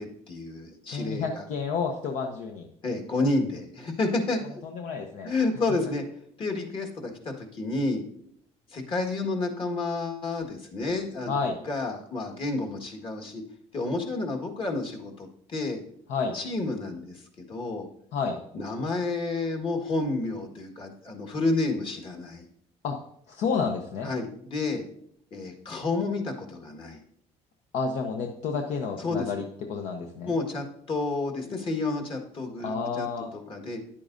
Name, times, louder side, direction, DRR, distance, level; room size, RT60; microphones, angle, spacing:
voice 1, 0.0-1.4 2.8-4.6 5.2-6.0 6.4-8.0 8.7-11.3 11.6-13.4 13.7-15.8 16.3-17.9 18.5-22.4 24.0-24.9 25.3-27.0 29.0-29.3 30.2-33.1 33.3-33.8, left 2 dB, 40° left, 3 dB, 1.6 m, -30 dB
voice 2, 0.9-2.7 4.6-5.3 11.3-11.6 16.1-16.3 18.1-18.4 22.8-23.0 23.3-24.1 27.7-29.4 29.7-30.3 32.6-33.3, left 5 dB, 70° left, 3 dB, 0.9 m, -30 dB
10.0 x 8.5 x 2.6 m, 0.69 s
cardioid pair, 100°, 13 cm